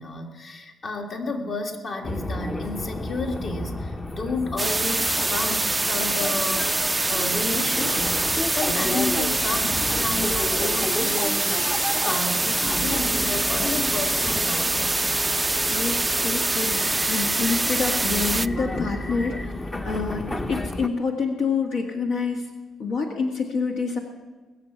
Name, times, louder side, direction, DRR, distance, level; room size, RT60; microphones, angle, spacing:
voice 1, 0.0-8.2 8.5-15.1, left 3 dB, 50° left, 3 dB, 2.1 m, -32 dB
sound 1, 2.0-20.9, left 2 dB, 25° left, 0.8 m, -33 dB
sound 2, 4.6-18.5, right 2 dB, 15° right, 0.3 m, -24 dB
voice 2, 15.7-19.5 19.8-22.5 22.8-24.0, left 4 dB, 75° left, 2 dB, 1.7 m, -27 dB
20.0 x 7.2 x 6.9 m, 1.3 s
cardioid pair, 90°, 0 cm